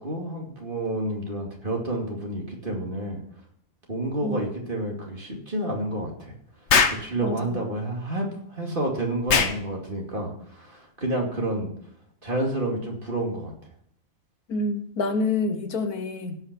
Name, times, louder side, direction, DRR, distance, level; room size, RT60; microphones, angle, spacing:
voice 1, 0.0-3.2 3.9-6.3 6.9-11.7 12.2-13.5, right 1 dB, 35° right, 0 dB, 2.7 m, -29 dB
Explosion, 6.7-7.1 9.3-9.6, left 5 dB, 50° left, 1.2 m, -20 dB
voice 2, 7.2-7.7 14.5-16.4, left 3 dB, 80° left, 7 dB, 1.7 m, -27 dB
16.5 x 5.9 x 6.2 m, 0.64 s
omnidirectional pair, 1.6 m